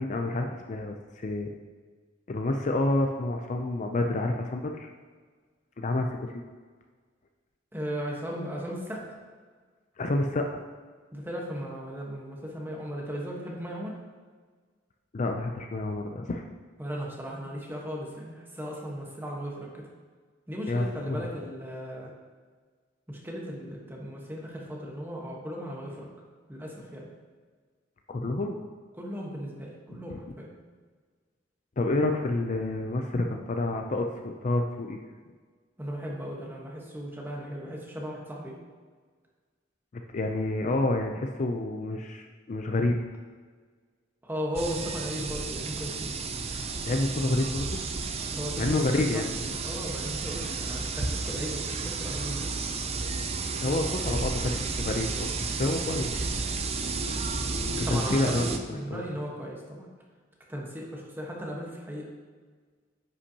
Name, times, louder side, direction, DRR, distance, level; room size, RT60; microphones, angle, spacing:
voice 1, 0.0-1.5 2.3-4.9 5.8-6.3 10.0-10.6 15.1-16.4 20.7-21.3 28.1-28.6 29.9-30.2 31.8-35.0 40.1-43.0 46.5-47.8 48.6-49.2 53.6-55.3 55.6-56.1 57.1-57.2 57.8-59.0, left 2 dB, 40° left, 3 dB, 0.5 m, -29 dB
voice 2, 7.7-9.0 11.1-14.0 16.8-19.9 20.5-22.1 23.1-26.1 26.5-27.1 29.0-30.5 35.8-38.6 44.2-46.1 48.3-52.5 57.8-59.9 60.5-62.1, equal, 10° right, -2 dB, 1.2 m, -36 dB
sound 1, 44.6-58.6, right 4 dB, 35° right, 0.5 m, -32 dB
9.7 x 5.6 x 2.9 m, 1.5 s
head